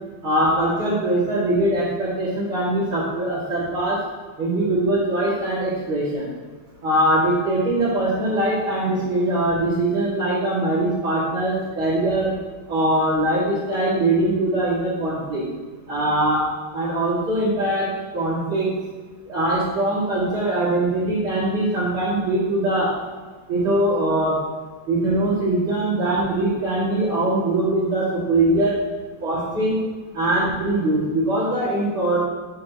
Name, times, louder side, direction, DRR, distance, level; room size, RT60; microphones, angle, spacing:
voice 1, 0.2-4.0 4.4-6.3 6.8-12.3 12.7-15.4 15.9-16.4 16.7-18.7 19.3-22.9 23.5-24.4 24.9-28.8 29.2-29.8 30.1-32.2, right 1 dB, 85° right, -12 dB, 3.5 m, -22 dB
12.0 x 8.4 x 3.2 m, 1.4 s
omnidirectional pair, 2.2 m